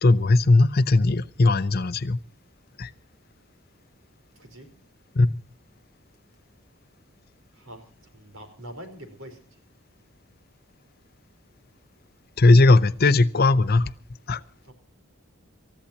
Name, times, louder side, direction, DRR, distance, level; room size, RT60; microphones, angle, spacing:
voice 1, 0.0-2.2 2.8-2.9 5.2-5.3 12.4-13.9 14.3-14.4, left 2 dB, 50° left, 15 dB, 0.7 m, -18 dB
voice 2, 8.1-9.4 14.7-14.8, equal, 75° right, 7 dB, 4.6 m, -43 dB
27.5 x 14.5 x 2.9 m, 0.41 s
head